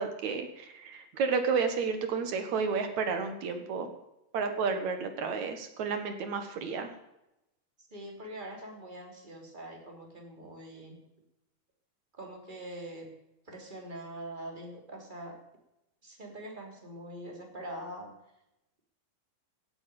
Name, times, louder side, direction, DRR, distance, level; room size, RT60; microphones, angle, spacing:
voice 1, 0.0-3.9 4.3-6.9, right 5 dB, 60° right, 7 dB, 2.5 m, -31 dB
voice 2, 7.9-11.0 12.2-13.2 13.4-15.4 16.0-18.1, right 1 dB, 15° right, 1 dB, 2.9 m, -43 dB
16.0 x 8.8 x 6.9 m, 0.89 s
omnidirectional pair, 4.2 m